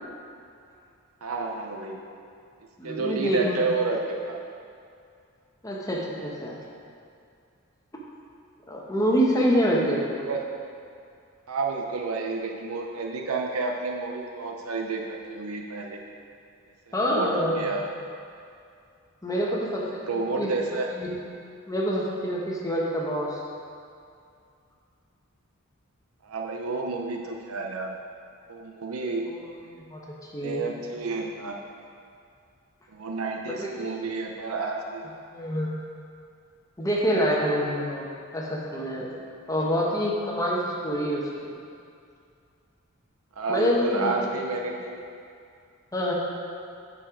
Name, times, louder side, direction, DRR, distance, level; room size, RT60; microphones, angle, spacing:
voice 1, 1.2-2.0 2.8-4.4 10.3-10.4 11.5-16.0 16.9-17.9 19.4-19.5 20.0-20.9 26.2-28.0 28.5-29.3 30.4-31.6 32.9-35.1 43.4-45.0, right 3 dB, 85° right, 2 dB, 0.7 m, -30 dB
voice 2, 2.8-3.7 5.6-6.6 8.7-10.0 16.9-17.8 19.2-20.5 20.9-21.2 21.7-23.4 29.3-29.4 29.9-30.0 30.3-30.6 33.5-34.0 35.3-35.7 36.8-38.1 38.3-39.1 39.5-41.5 43.5-44.1 45.9-46.1, equal, 15° left, -4 dB, 1.1 m, -26 dB
8.6 x 5.5 x 4.9 m, 2.4 s
head